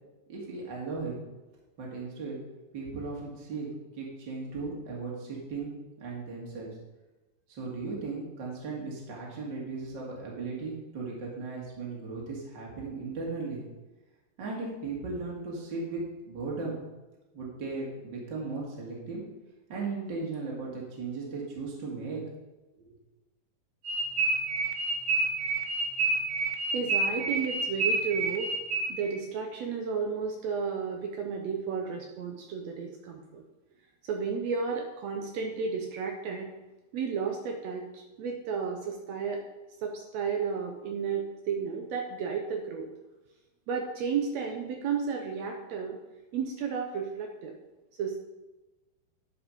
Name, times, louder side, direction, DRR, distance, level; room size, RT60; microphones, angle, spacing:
voice 1, 0.3-1.1 1.8-2.4 2.7-3.7 3.9-5.7 6.0-6.7 7.5-13.6 14.4-16.8 17.3-19.2 19.7-22.2 22.8-23.0, right 4 dB, 35° right, -3 dB, 2.3 m, -36 dB
sound 1, 23.9-29.2, right 3 dB, 65° right, 2.0 m, -29 dB
voice 2, 26.7-28.5 28.9-33.4 34.0-36.5 36.9-39.4 39.8-42.9 43.7-46.0 46.3-47.5 48.0-48.2, right 6 dB, 85° right, 2 dB, 1.5 m, -33 dB
11.5 x 5.2 x 5.3 m, 1.1 s
omnidirectional pair, 4.3 m